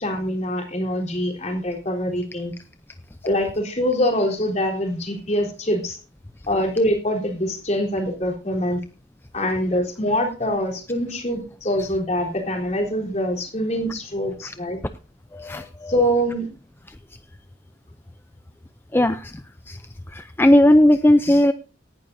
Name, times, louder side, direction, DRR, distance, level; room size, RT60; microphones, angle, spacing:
voice 1, 0.0-2.5 3.2-6.0 6.5-8.8 9.3-14.8 15.9-16.5, equal, 35° left, 2 dB, 3.8 m, -24 dB
voice 2, 15.3-15.9 18.9-19.4 19.7-19.8 20.1-21.5, left 1 dB, 10° left, 11 dB, 0.5 m, -17 dB
18.0 x 11.5 x 2.7 m, 0.36 s
head